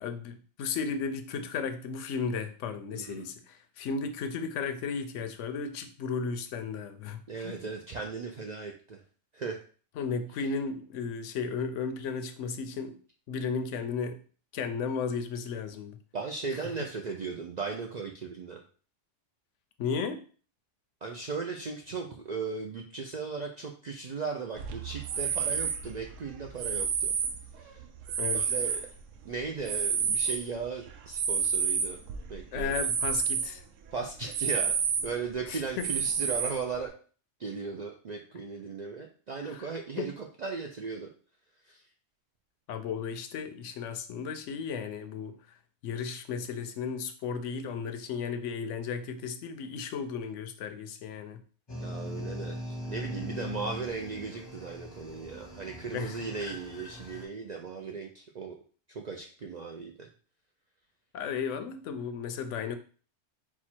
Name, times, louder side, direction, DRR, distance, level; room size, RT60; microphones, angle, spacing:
voice 1, 0.0-7.6 10.0-13.0 13.3-14.2 14.5-16.0 19.8-20.2 28.2-28.4 32.5-33.6 35.5-35.9 39.4-39.6 40.0-40.1 42.7-45.3 45.8-51.4 55.9-56.2 61.1-62.8, left 5 dB, 80° left, 9 dB, 0.9 m, -34 dB
voice 2, 2.9-3.3 7.3-9.0 9.3-9.6 16.1-18.6 21.0-27.2 27.6-27.8 28.3-28.8 29.2-32.0 32.3-32.9 33.9-36.9 37.4-41.1 41.7-41.8 51.8-58.6 58.9-60.1, right 4 dB, 60° right, 1 dB, 0.4 m, -37 dB
sound 1, 24.6-29.2 29.6-33.5 33.9-34.0 34.3-35.3 35.8-36.8, right 6 dB, 90° right, 1.0 m, -30 dB
sound 2, 51.7-57.2, left 1 dB, 25° left, 0.7 m, -40 dB
4.4 x 2.3 x 4.3 m, 0.40 s
omnidirectional pair, 1.3 m